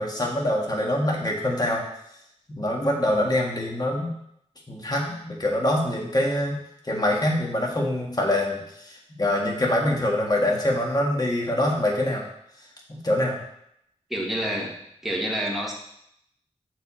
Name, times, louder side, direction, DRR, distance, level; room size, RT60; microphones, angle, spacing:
voice 1, 0.0-1.8 2.5-4.1 4.7-6.6 6.8-12.2 12.9-13.4, left 1 dB, 35° left, -1 dB, 1.6 m, -24 dB
voice 2, 14.1-14.8 15.0-15.7, equal, ahead, -3 dB, 1.6 m, -28 dB
6.7 x 4.7 x 4.3 m, 0.75 s
wide cardioid pair, 85°, 12 cm